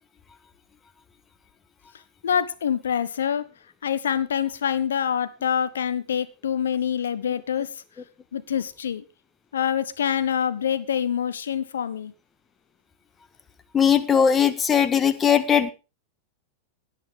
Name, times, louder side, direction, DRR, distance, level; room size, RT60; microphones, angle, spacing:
voice 1, 2.2-3.5 3.8-7.7 8.3-9.0 9.5-12.1, left 8 dB, 65° left, 14 dB, 1.2 m, -25 dB
voice 2, 13.7-15.7, left 8 dB, 20° left, 12 dB, 1.5 m, -19 dB
18.0 x 9.7 x 3.5 m, 0.30 s
figure-of-eight pair, 90°, 0 cm